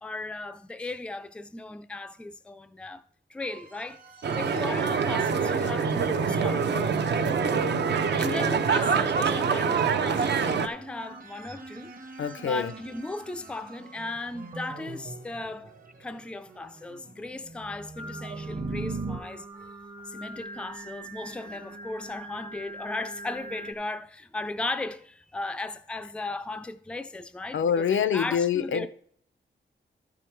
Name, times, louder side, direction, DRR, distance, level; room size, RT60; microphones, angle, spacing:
voice 1, 0.0-3.0 3.3-4.0 4.3-6.8 8.2-11.9 12.4-15.7 16.0-19.8 20.1-28.9, left 2 dB, 5° left, 0.4 m, -36 dB
sound 1, 3.4-19.2, right 3 dB, 45° right, 1.0 m, -43 dB
sound 2, 4.2-10.7, right 5 dB, 65° right, 0.6 m, -25 dB
voice 2, 12.2-12.7 27.5-28.9, left 7 dB, 90° left, 0.6 m, -25 dB
Singing, 18.0-23.7, right 2 dB, 25° right, 0.7 m, -43 dB
12.5 x 5.1 x 4.5 m
wide cardioid pair, 160°, 20 cm